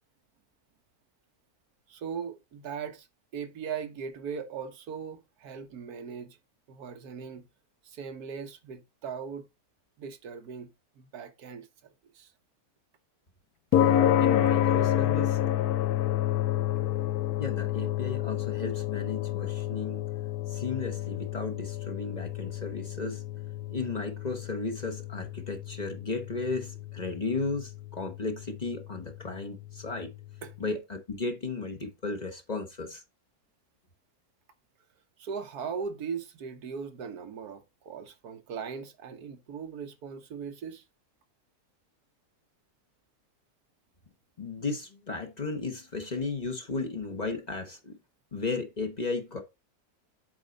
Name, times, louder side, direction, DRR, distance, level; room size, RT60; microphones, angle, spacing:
voice 1, 1.9-3.1 3.3-6.4 6.7-7.5 7.8-9.5 10.0-11.7 12.1-12.3 30.4-30.5 35.2-40.8, right 6 dB, 90° right, 1.5 m, -39 dB
sound 1, 13.7-30.2, left 11 dB, 85° left, 1.1 m, -29 dB
voice 2, 14.2-15.4 17.4-20.0 20.5-23.2 23.7-30.1 30.6-33.0 44.4-48.0 48.3-49.4, left 3 dB, 30° left, 1.1 m, -34 dB
7.7 x 4.6 x 3.9 m
omnidirectional pair, 1.6 m